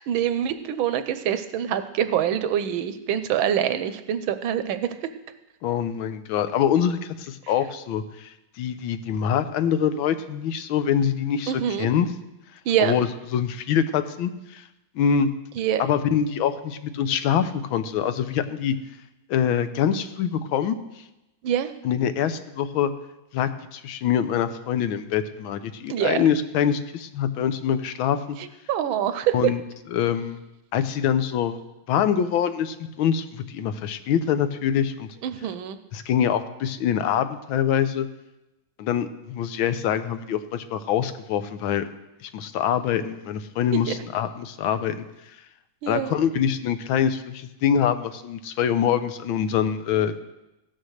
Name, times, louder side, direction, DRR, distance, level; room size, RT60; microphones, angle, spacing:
voice 1, 0.1-4.9 11.5-11.9 12.7-12.9 15.5-15.8 21.4-21.7 25.9-26.2 28.4-29.5 35.2-35.8 43.7-43.9 45.8-46.1, right 10 dB, 85° right, 11 dB, 1.6 m, -25 dB
voice 2, 5.6-11.5 11.8-12.1 12.8-14.6 14.9-15.3 15.8-18.7 19.3-20.8 21.8-22.9 23.3-28.4 29.3-29.6 29.9-30.4 30.7-31.6 31.9-35.1 35.9-38.1 38.8-41.8 42.2-45.1 45.9-50.2, left 8 dB, 90° left, 10 dB, 1.6 m, -24 dB
16.0 x 6.4 x 6.4 m, 0.96 s
omnidirectional pair, 2.1 m